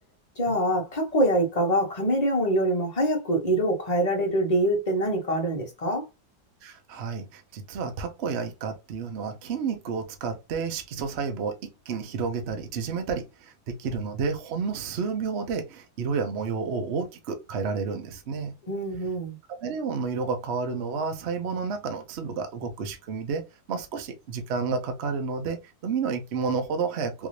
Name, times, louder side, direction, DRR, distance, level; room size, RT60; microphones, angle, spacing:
voice 1, 0.4-6.0 18.7-19.4, right 1 dB, 25° left, 0.9 m, -24 dB
voice 2, 6.6-18.5 19.5-23.4 23.7-27.3, right 5 dB, 55° right, 0.7 m, -31 dB
3.6 x 2.7 x 3.1 m
omnidirectional pair, 2.0 m